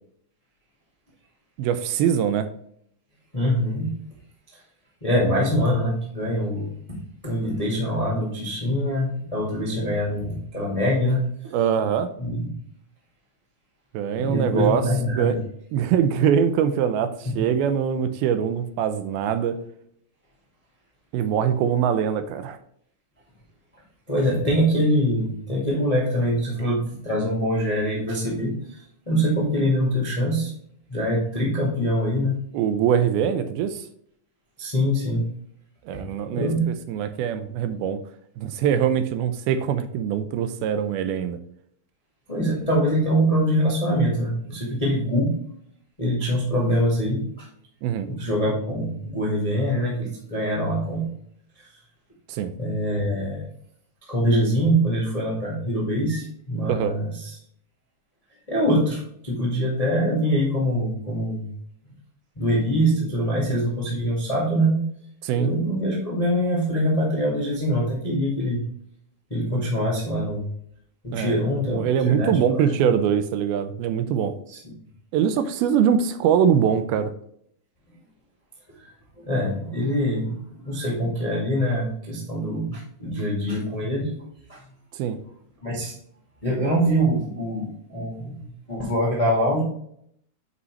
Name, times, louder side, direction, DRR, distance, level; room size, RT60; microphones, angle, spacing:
voice 1, 1.6-2.5 11.5-12.1 13.9-14.8 15.1-15.4 15.7-19.6 21.1-22.6 32.5-33.9 35.9-38.0 38.4-41.4 47.8-48.1 52.3-52.5 56.7-56.9 65.2-65.5 71.1-71.4 71.7-74.3 75.1-77.1 84.9-85.2, right 8 dB, 80° right, 10 dB, 2.4 m, -23 dB
voice 2, 3.3-3.9 4.5-4.6 5.0-6.7 7.2-11.5 12.2-12.5 14.2-15.4 17.2-17.3 24.1-30.5 30.9-32.4 33.3-33.4 34.6-35.3 36.3-36.6 42.3-45.3 46.0-47.5 48.1-51.0 52.6-53.4 54.1-57.4 58.5-61.5 62.3-64.8 65.3-68.6 69.3-70.5 71.0-72.9 74.5-74.6 78.7-78.9 79.2-80.4 80.6-84.1 84.5-84.6 85.6-85.9 86.4-89.6, equal, 55° left, -5 dB, 0.4 m, -24 dB
8.1 x 5.4 x 3.2 m, 0.68 s
omnidirectional pair, 4.5 m